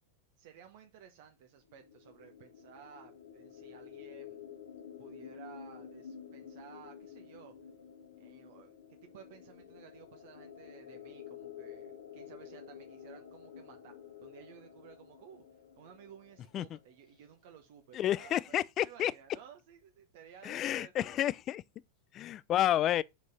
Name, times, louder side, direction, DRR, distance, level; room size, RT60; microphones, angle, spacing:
voice 1, 0.4-4.5 5.0-7.5 8.2-15.4 15.7-21.2, right 8 dB, 50° right, 1.0 m, -55 dB
sound 1, 1.6-17.3, left 8 dB, 70° left, 1.3 m, -51 dB
voice 2, 17.9-19.1 20.4-21.6 22.1-23.0, left 12 dB, 30° left, 0.4 m, -30 dB
5.3 x 4.6 x 5.3 m
figure-of-eight pair, 90°, 0 cm